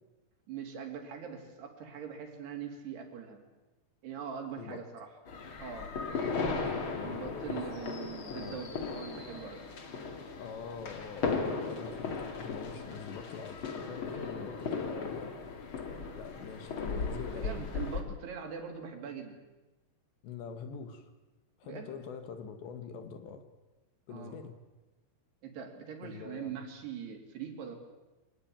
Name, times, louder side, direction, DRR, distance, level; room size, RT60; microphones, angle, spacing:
voice 1, 0.5-3.4 4.0-5.1 5.6-5.9 7.0-9.6 17.4-19.4 21.6-21.9 24.1-24.4 25.4-27.8, right 7 dB, 60° right, 3 dB, 4.6 m, -42 dB
sound 1, 5.3-18.0, left 4 dB, 55° left, 1.4 m, -37 dB
voice 2, 6.9-7.7 8.3-8.6 10.4-15.4 15.8-17.6 20.2-21.1 21.6-23.4 24.1-24.6 26.0-26.6, left 6 dB, 70° left, 8 dB, 3.5 m, -44 dB
24.5 x 18.5 x 8.9 m, 1.1 s
omnidirectional pair, 5.7 m